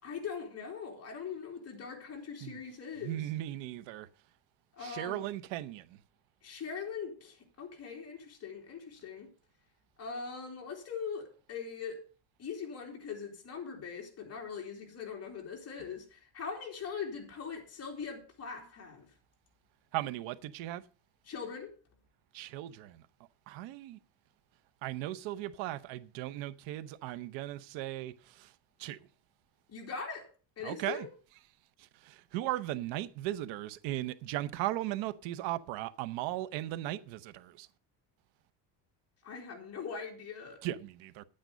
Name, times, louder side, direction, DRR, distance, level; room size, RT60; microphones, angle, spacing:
voice 1, 0.0-3.2 4.8-5.2 6.4-9.3 10.0-12.0 12.4-19.1 21.3-21.7 29.7-30.3 30.6-31.1 39.2-40.6, left 6 dB, 35° left, 3.2 m, -41 dB
voice 2, 3.0-4.1 4.8-6.0 19.9-20.8 22.3-23.0 23.5-24.0 24.8-28.5 28.8-29.0 30.6-31.1 31.8-37.7 40.6-41.2, right 15 dB, 85° right, 0.9 m, -37 dB
10.5 x 8.8 x 5.0 m
cardioid pair, 150°, 44 cm